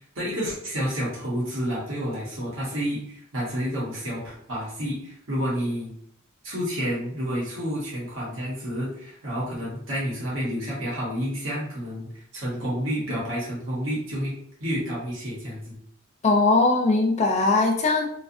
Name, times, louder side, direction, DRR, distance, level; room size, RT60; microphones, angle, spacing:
voice 1, 0.1-5.9 6.4-12.1 12.3-14.3 14.6-15.8, equal, 80° right, -6 dB, 1.2 m, -29 dB
voice 2, 16.2-18.1, left 3 dB, 35° left, 2 dB, 0.4 m, -20 dB
2.6 x 2.4 x 2.6 m, 0.66 s
head